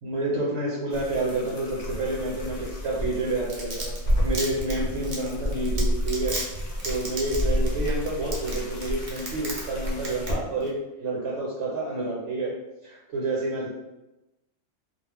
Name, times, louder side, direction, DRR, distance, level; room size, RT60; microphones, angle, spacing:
voice 1, 0.0-3.9 4.2-6.4 6.8-12.5 12.8-13.7, right 2 dB, 70° right, -5 dB, 1.0 m, -29 dB
sound 1, 0.9-10.3, equal, 55° left, 0.7 m, -30 dB
Domestic sounds home sounds, 3.3-9.6 9.9-10.3 10.6-10.7, right 2 dB, 50° right, 0.6 m, -33 dB
2.4 x 2.0 x 3.2 m, 0.98 s
omnidirectional pair, 1.3 m